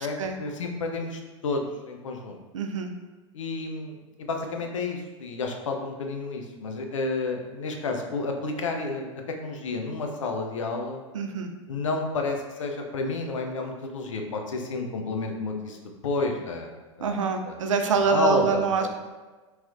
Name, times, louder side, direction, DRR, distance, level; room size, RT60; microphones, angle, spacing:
voice 1, 0.0-2.4 3.3-9.1 9.4-11.0 11.7-15.8 16.0-16.7 17.0-17.1 17.5-17.6 17.9-18.9, left 3 dB, 75° left, 3 dB, 0.5 m, -30 dB
voice 2, 2.5-2.9 11.1-11.5 17.0-18.9, right 5 dB, 75° right, 5 dB, 0.4 m, -25 dB
3.1 x 3.0 x 2.4 m, 1.2 s
figure-of-eight pair, 90°, 16 cm